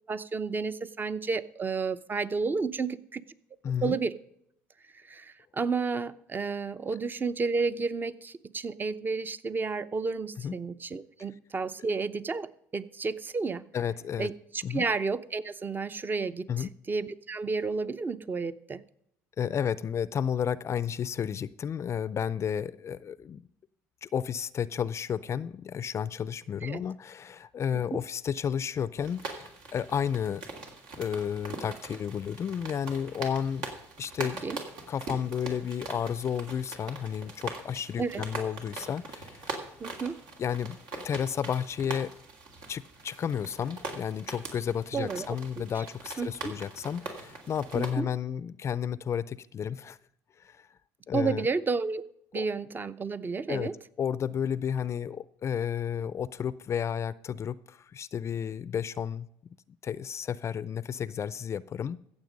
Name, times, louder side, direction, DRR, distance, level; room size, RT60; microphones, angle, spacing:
voice 1, 0.1-3.2 3.8-4.1 5.1-13.6 14.2-18.8 26.6-26.8 27.7-27.8 34.4-34.6 38.0-38.2 39.8-40.1 44.9-45.3 46.2-46.5 47.7-48.1 51.1-52.0 52.3-53.7, right 4 dB, 30° right, 14 dB, 0.8 m, -31 dB
voice 2, 3.6-4.0 10.4-10.5 13.7-14.3 14.6-14.8 16.5-16.7 19.4-23.5 24.0-30.4 31.0-33.7 34.0-34.4 34.9-39.5 40.4-42.1 42.7-50.0 50.4-50.7 51.1-51.5 52.3-52.5 53.5-53.7 54.0-59.3 59.8-62.0, left 8 dB, 40° left, 18 dB, 0.5 m, -32 dB
sound 1, 29.0-47.9, right 3 dB, 75° right, 2.8 m, -42 dB
15.0 x 7.3 x 5.2 m, 0.73 s
supercardioid pair, 80°, 7 cm